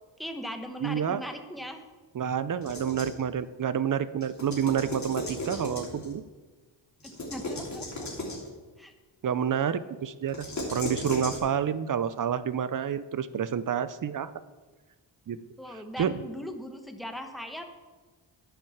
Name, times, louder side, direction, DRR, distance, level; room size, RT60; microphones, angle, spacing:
voice 1, 0.2-1.8 7.0-8.1 8.8-8.9 15.3-17.6, equal, ahead, 5 dB, 1.1 m, -39 dB
voice 2, 0.8-1.2 2.1-6.2 9.2-14.3 15.3-15.4 15.7-16.2, right 8 dB, 45° right, 15 dB, 0.6 m, -29 dB
sound 1, 2.6-3.2 4.2-6.1 7.0-8.5 10.3-11.4, left 1 dB, 35° left, 3.1 m, -36 dB
10.5 x 5.7 x 7.1 m, 1.3 s
cardioid pair, 100°, 47 cm